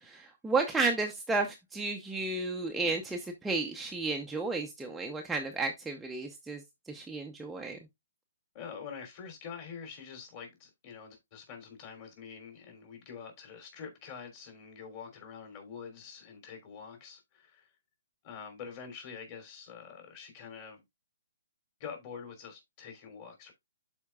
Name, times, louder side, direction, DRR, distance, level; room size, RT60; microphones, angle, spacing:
voice 1, 0.0-6.6 6.9-7.8, right 3 dB, 5° right, 0.8 m, -32 dB
voice 2, 8.5-17.7 18.2-20.8 21.8-23.5, left 6 dB, 35° left, 3.2 m, -46 dB
12.0 x 4.4 x 2.3 m
hypercardioid pair, 140°, 0 cm